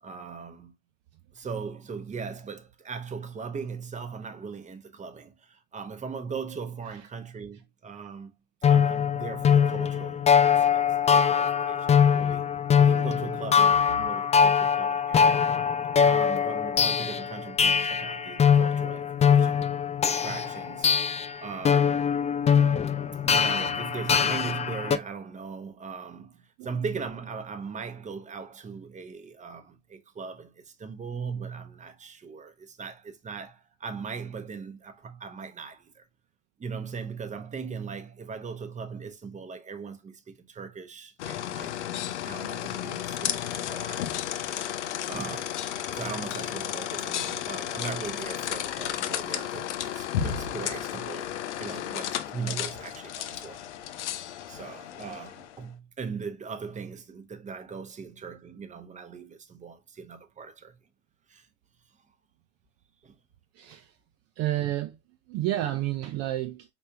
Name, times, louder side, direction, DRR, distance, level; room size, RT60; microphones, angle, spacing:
voice 1, 0.0-0.7 1.3-8.3 8.7-12.4 12.8-15.5 16.0-19.7 20.0-21.0 21.4-22.2 23.2-36.0 36.6-41.7 42.2-44.3 44.6-44.7 45.1-45.6 45.9-53.6 54.0-54.2 54.5-60.8 61.3-61.5 63.0-63.2 64.7-64.8, right 5 dB, 20° right, 0.9 m, -39 dB
sound 1, 8.6-25.0, left 7 dB, 20° left, 0.3 m, -23 dB
sound 2, 41.2-55.6, left 11 dB, 75° left, 0.6 m, -33 dB
voice 2, 64.4-64.9 65.3-66.6, right 14 dB, 45° right, 0.6 m, -29 dB
5.1 x 3.3 x 2.8 m
figure-of-eight pair, 70°, 35 cm